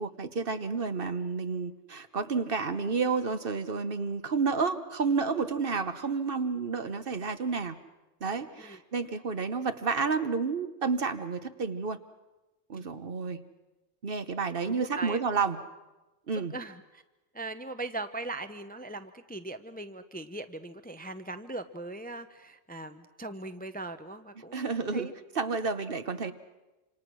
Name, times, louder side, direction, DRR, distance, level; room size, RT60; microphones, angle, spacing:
voice 1, 0.0-7.8 8.2-12.0 12.7-13.4 14.0-15.6 16.3-16.6 24.5-26.3, right 4 dB, 55° right, 10 dB, 1.3 m, -30 dB
voice 2, 14.7-15.2 16.5-17.0 17.3-25.1 26.2-26.3, right 2 dB, 10° left, 9 dB, 0.7 m, -40 dB
27.0 x 26.5 x 6.2 m, 1.1 s
omnidirectional pair, 1.2 m